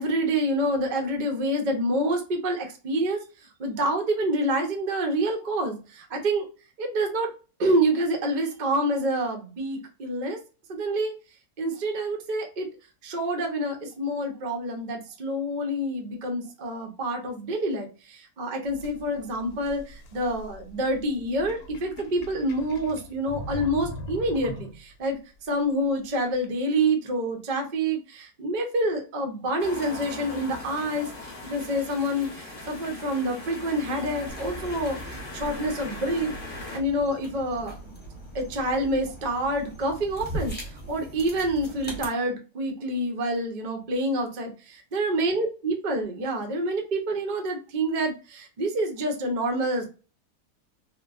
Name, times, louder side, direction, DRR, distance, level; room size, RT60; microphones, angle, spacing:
voice 1, 0.0-3.2 3.6-6.4 6.8-7.3 7.6-10.4 10.7-11.1 11.6-12.7 13.0-25.2 25.5-31.1 31.4-36.3 36.7-37.7 38.3-40.6 40.9-49.8, right 1 dB, 60° right, 3 dB, 0.5 m, -27 dB
sound 1, 18.6-25.1, equal, 75° left, 1.1 m, -41 dB
sound 2, 29.6-36.8, left 2 dB, 45° left, 0.8 m, -39 dB
sound 3, 34.3-42.1, right 1 dB, 10° left, 0.6 m, -40 dB
2.9 x 2.2 x 2.3 m, 0.34 s
omnidirectional pair, 1.7 m